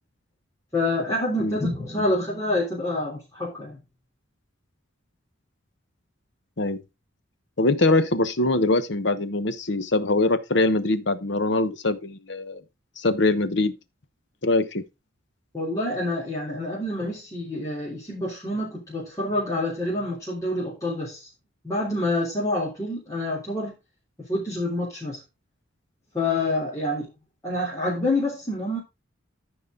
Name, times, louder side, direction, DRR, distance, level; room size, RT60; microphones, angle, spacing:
voice 1, 0.7-3.8 15.5-21.3 21.6-23.7 24.3-25.2 26.1-27.1 27.4-28.8, left 1 dB, 15° left, 3.4 m, -27 dB
voice 2, 7.6-12.6 13.0-13.7 14.4-14.8, left 2 dB, 60° left, 1.1 m, -23 dB
13.5 x 5.3 x 3.8 m
head